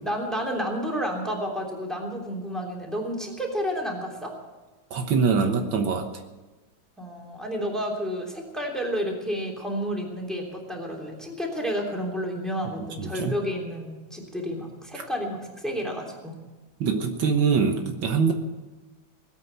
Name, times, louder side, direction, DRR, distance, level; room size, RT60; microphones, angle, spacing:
voice 1, 0.0-4.3 7.0-16.4, equal, ahead, 0 dB, 3.1 m, -31 dB
voice 2, 4.9-6.1 13.0-13.3 16.8-18.3, right 5 dB, 70° right, 5 dB, 1.9 m, -23 dB
19.0 x 8.8 x 8.1 m, 1.2 s
omnidirectional pair, 2.2 m